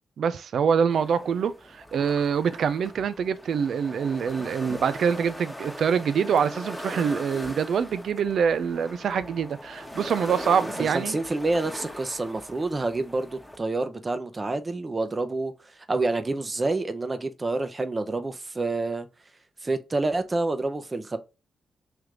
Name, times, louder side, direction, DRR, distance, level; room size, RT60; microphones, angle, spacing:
voice 1, 0.2-11.2, right 7 dB, 70° right, 0.4 m, -25 dB
sound 1, 0.9-13.6, equal, 10° left, 1.2 m, -40 dB
voice 2, 10.6-15.5 15.9-19.1 19.6-21.2, right 2 dB, 35° right, 0.7 m, -28 dB
3.3 x 3.1 x 3.7 m
supercardioid pair, 45°, 0 cm